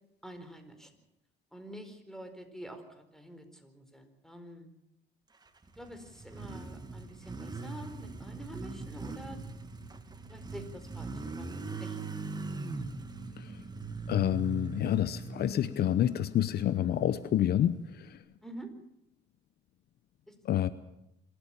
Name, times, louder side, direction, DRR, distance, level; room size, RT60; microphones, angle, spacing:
voice 1, 0.2-0.9 1.5-4.7 5.8-9.4 10.3-12.0 18.4-18.7 20.3-20.4, equal, ahead, 8 dB, 4.5 m, -47 dB
Motorcycle, 5.5-18.1, right 3 dB, 20° right, 2.3 m, -41 dB
voice 2, 14.1-18.2 20.4-20.7, left 11 dB, 60° left, 15 dB, 0.9 m, -28 dB
26.5 x 13.5 x 8.8 m, 0.86 s
cardioid pair, 85°, 18 cm